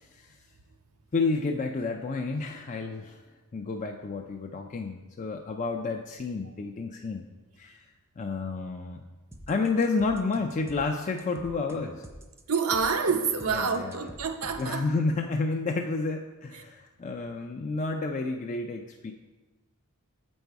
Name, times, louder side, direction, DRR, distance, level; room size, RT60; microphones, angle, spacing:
voice 1, 1.1-3.2 3.5-7.3 7.6-7.8 8.2-9.0 9.5-12.0 13.5-14.1 14.6-19.1, left 3 dB, 35° left, 2 dB, 0.4 m, -30 dB
sound 1, 9.3-14.8, right 1 dB, 10° right, 0.6 m, -47 dB
voice 2, 12.5-14.8, right 5 dB, 75° right, 6 dB, 0.7 m, -27 dB
8.0 x 5.3 x 4.6 m, 1.2 s
head